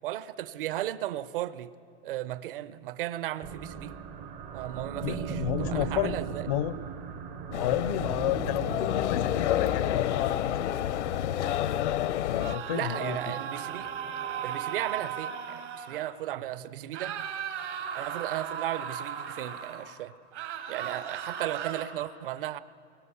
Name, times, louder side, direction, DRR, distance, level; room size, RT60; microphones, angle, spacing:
voice 1, 0.0-1.7 2.0-3.9 4.5-6.5 12.7-13.9 14.4-17.3 17.9-20.1 20.7-22.6, right 13 dB, 50° right, 0.8 m, -35 dB
sound 1, 3.4-15.4, right 6 dB, 20° right, 0.5 m, -40 dB
voice 2, 5.0-6.2 6.5-6.8 7.5-10.8 12.3-13.3, left 13 dB, 35° left, 0.4 m, -32 dB
sound 2, 7.5-12.6, left 12 dB, 80° left, 0.8 m, -29 dB
sound 3, 12.4-16.0 16.9-19.9 20.3-21.8, right 8 dB, 75° right, 3.2 m, -36 dB
25.0 x 23.0 x 7.1 m
supercardioid pair, 175°, 34 cm